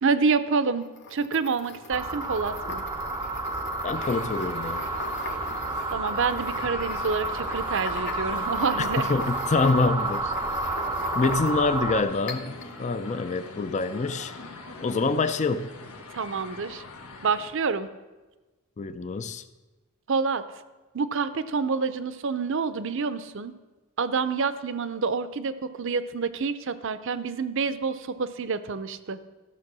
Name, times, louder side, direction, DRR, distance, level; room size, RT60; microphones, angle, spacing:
voice 1, 0.0-2.8 5.9-9.1 16.1-16.8 17.2-17.9 20.1-20.4 20.9-23.5 24.0-29.2, right 5 dB, 60° right, 13 dB, 0.6 m, -27 dB
sound 1, 0.8-11.8 12.3-12.7, left 3 dB, 50° left, 1.0 m, -40 dB
sound 2, 1.9-12.0, right 2 dB, 15° right, 0.6 m, -30 dB
voice 2, 3.8-4.9 8.8-10.3 11.1-14.3 14.8-15.7 18.8-19.4, left 3 dB, 35° left, 11 dB, 0.4 m, -26 dB
sound 3, 3.9-17.5, left 3 dB, 90° left, 1.4 m, -44 dB
13.5 x 6.5 x 6.1 m, 1.2 s
head